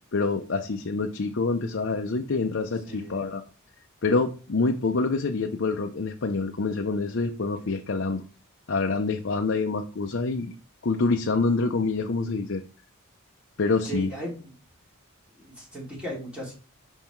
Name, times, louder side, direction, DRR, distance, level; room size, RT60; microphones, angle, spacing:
voice 1, 0.1-3.4 4.0-8.2 8.7-10.5 10.8-12.6 13.6-14.1, left 3 dB, 55° left, 4 dB, 0.6 m, -26 dB
voice 2, 2.8-3.2 7.4-7.7 13.8-14.5 15.3-16.5, equal, 5° right, -5 dB, 3.1 m, -37 dB
5.6 x 5.4 x 4.5 m, 0.36 s
head